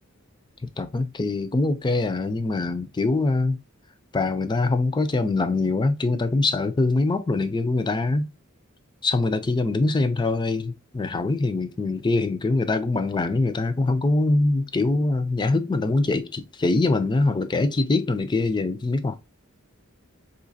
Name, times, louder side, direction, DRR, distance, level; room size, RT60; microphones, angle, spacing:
voice 1, 0.8-3.6 4.1-8.3 9.0-19.2, left 2 dB, 20° left, 0.4 m, -23 dB
4.0 x 2.8 x 2.6 m
head